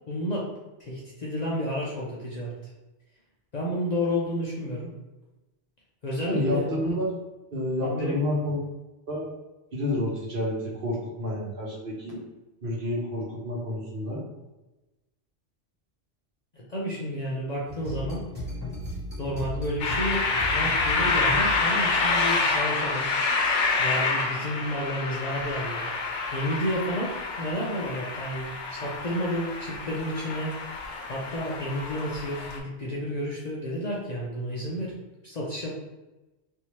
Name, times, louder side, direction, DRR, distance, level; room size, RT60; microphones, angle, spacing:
voice 1, 0.1-0.4 0.8-2.5 3.5-4.9 6.0-6.7 7.8-8.1 16.5-18.2 19.2-23.1 23.8-25.9 26.3-30.5 31.1-34.9 35.2-35.7, equal, 45° left, -4 dB, 0.6 m, -31 dB
voice 2, 6.3-7.1 7.5-8.6 9.1-9.3 9.7-12.2 12.6-14.2, left 1 dB, 50° right, -4 dB, 1.1 m, -29 dB
sound 1, 17.7-21.8, equal, 10° right, 1.4 m, -36 dB
sound 2, 19.8-32.6, left 3 dB, 85° left, 0.9 m, -28 dB
3.4 x 2.7 x 2.9 m, 1.0 s
omnidirectional pair, 1.2 m